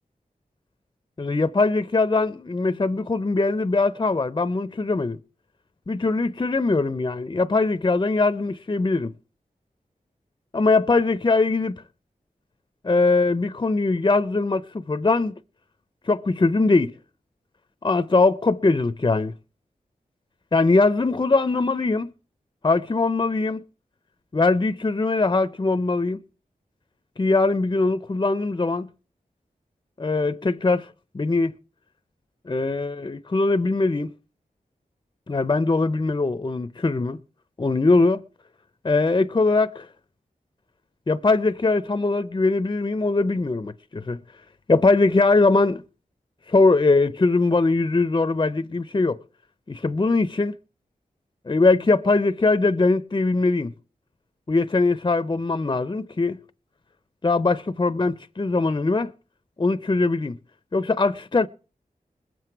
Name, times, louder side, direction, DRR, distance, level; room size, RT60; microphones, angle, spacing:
voice 1, 1.2-5.2 5.9-9.1 10.5-11.8 12.8-15.3 16.1-16.9 17.8-19.3 20.5-22.1 22.6-23.6 24.3-26.2 27.2-28.9 30.0-30.9 31.1-31.5 32.5-34.1 35.3-37.2 37.6-38.2 38.8-39.9 41.1-44.2 44.7-45.8 46.5-49.2 49.7-50.5 51.5-53.7 54.5-56.4 57.2-59.1 59.6-60.4 60.7-61.5, left 3 dB, 30° left, 0.6 m, -21 dB
21.0 x 7.8 x 4.6 m
wide cardioid pair, 95°, 15 cm